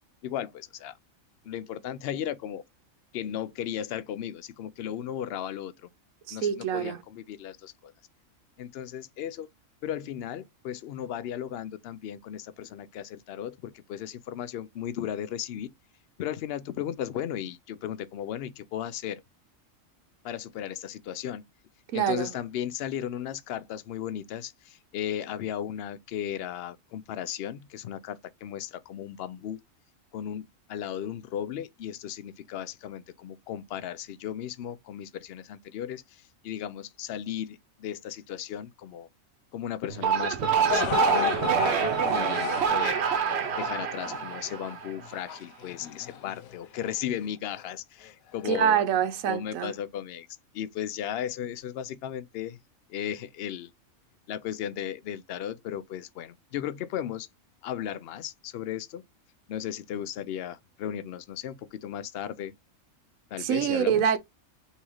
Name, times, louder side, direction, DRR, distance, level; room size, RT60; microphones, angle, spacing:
voice 1, 0.2-0.9 1.4-2.6 3.1-5.9 6.3-7.9 8.6-9.5 9.8-15.7 16.2-19.2 20.2-21.4 21.9-29.6 30.1-39.1 39.5-43.1 43.6-48.8 49.3-50.3 50.5-52.6 52.9-53.7 54.3-57.3 57.6-59.0 59.5-62.5 63.3-64.0, left 10 dB, 65° left, 0.6 m, -35 dB
voice 2, 6.3-7.0 21.9-22.3 48.4-49.7 63.4-64.2, right 9 dB, 80° right, 1.1 m, -25 dB
sound 1, 39.9-45.2, right 8 dB, 60° right, 0.9 m, -26 dB
sound 2, 40.7-46.9 47.6-47.7 48.4-48.6, left 9 dB, 85° left, 1.0 m, -33 dB
4.2 x 3.6 x 3.0 m
omnidirectional pair, 1.4 m